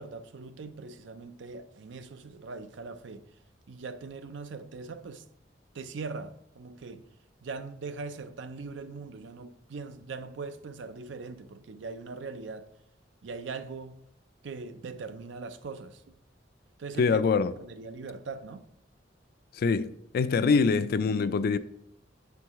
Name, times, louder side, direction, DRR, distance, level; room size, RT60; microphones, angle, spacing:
voice 1, 0.0-3.3 3.7-5.3 5.7-7.0 7.4-12.7 13.2-14.0 14.4-16.1 16.8-17.3 17.6-18.7, right 4 dB, 75° right, 0.5 m, -41 dB
voice 2, 17.0-17.5 19.6-21.6, left 5 dB, 55° left, 0.3 m, -24 dB
7.7 x 4.6 x 3.5 m
head